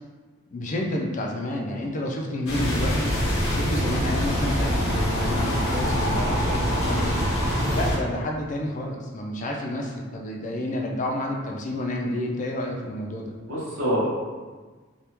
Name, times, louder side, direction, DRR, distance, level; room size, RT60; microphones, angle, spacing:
voice 1, 0.5-3.1 3.4-7.2 7.7-13.4, left 1 dB, 35° left, 0 dB, 0.4 m, -30 dB
sound 1, 2.5-8.0, equal, 80° left, 0.8 m, -24 dB
voice 2, 13.5-14.1, equal, 70° right, -7 dB, 1.1 m, -26 dB
3.4 x 2.3 x 2.9 m, 1.4 s
head